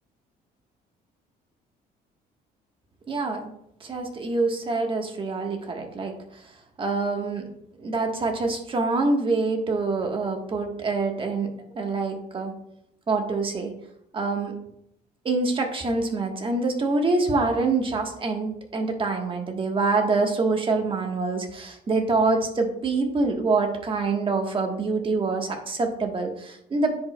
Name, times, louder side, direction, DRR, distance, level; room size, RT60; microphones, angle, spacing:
voice 1, 3.1-3.5 3.8-6.4 6.8-7.4 7.8-12.5 13.1-13.7 14.1-14.5 15.2-27.0, right 3 dB, 30° right, 3 dB, 1.3 m, -25 dB
10.0 x 5.0 x 2.2 m, 0.74 s
cardioid pair, 110°, 17 cm